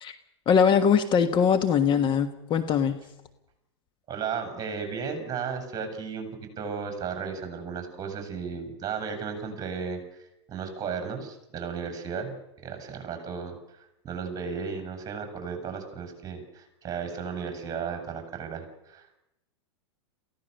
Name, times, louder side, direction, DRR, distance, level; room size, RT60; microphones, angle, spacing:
voice 1, 0.5-3.0, left 7 dB, 35° left, 8 dB, 1.4 m, -22 dB
voice 2, 4.1-12.3 12.6-19.2, right 6 dB, 25° right, 5 dB, 6.8 m, -35 dB
28.5 x 16.0 x 6.7 m, 0.89 s
hypercardioid pair, 100°, 15 cm